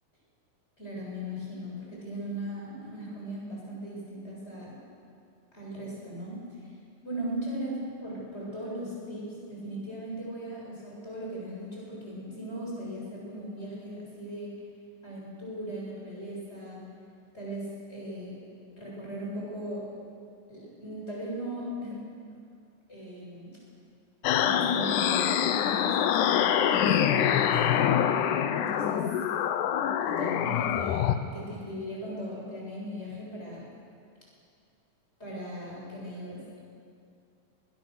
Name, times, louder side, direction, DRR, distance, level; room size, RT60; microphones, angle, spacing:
voice 1, 0.8-4.8 5.5-6.7 7.0-7.7 8.0-14.5 15.0-16.8 17.3-18.5 18.8-19.8 20.5-22.0 22.9-23.6 24.3-28.0 28.5-29.1 29.8-33.6 35.2-36.4, equal, 15° left, -5 dB, 7.7 m, -38 dB
sound 1, 24.2-31.2, left 9 dB, 70° left, 2.1 m, -25 dB
21.5 x 21.0 x 6.8 m, 2.3 s
omnidirectional pair, 4.3 m